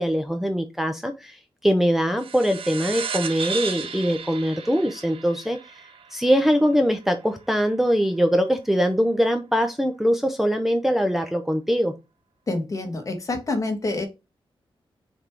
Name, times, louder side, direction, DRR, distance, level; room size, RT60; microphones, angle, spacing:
voice 1, 0.0-5.8 6.1-11.9, equal, 5° right, 4 dB, 0.7 m, -22 dB
sound 1, 2.2-7.1, right 6 dB, 75° right, 1.1 m, -34 dB
voice 2, 12.5-14.0, left 2 dB, 35° left, 5 dB, 1.6 m, -27 dB
6.3 x 3.6 x 4.7 m, 0.25 s
wide cardioid pair, 135°, 10 cm